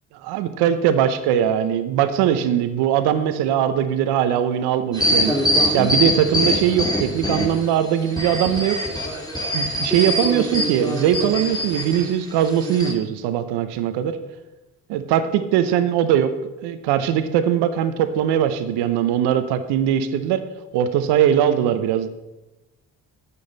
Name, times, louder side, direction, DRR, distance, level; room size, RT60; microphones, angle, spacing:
voice 1, 0.2-5.4 5.7-8.8 9.5-14.2 14.9-16.3 16.6-20.4 20.7-22.1, right 10 dB, 80° right, 10 dB, 0.9 m, -20 dB
sound 1, 4.9-7.7 8.1-12.0 12.6-12.9, equal, 10° left, 3.0 m, -23 dB
12.0 x 8.4 x 4.0 m, 1.0 s
hypercardioid pair, 45°, 40 cm